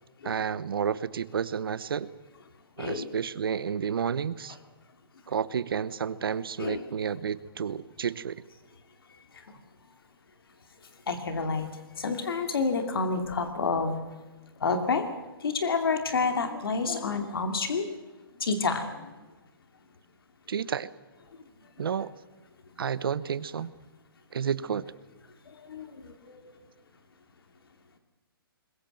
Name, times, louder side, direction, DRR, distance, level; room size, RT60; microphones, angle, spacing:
voice 1, 0.2-2.1 2.8-4.6 5.3-8.4 20.5-20.9 21.8-22.1 22.8-23.7 24.3-24.9, right 7 dB, 70° right, 17 dB, 1.0 m, -31 dB
voice 2, 2.8-3.1 6.6-6.8 11.1-11.7 12.0-14.0 14.6-15.0 15.4-17.9 18.4-18.8 25.7-26.6, left 4 dB, 70° left, 6 dB, 2.6 m, -29 dB
21.5 x 20.5 x 7.8 m, 1.2 s
hypercardioid pair, 160°, 13 cm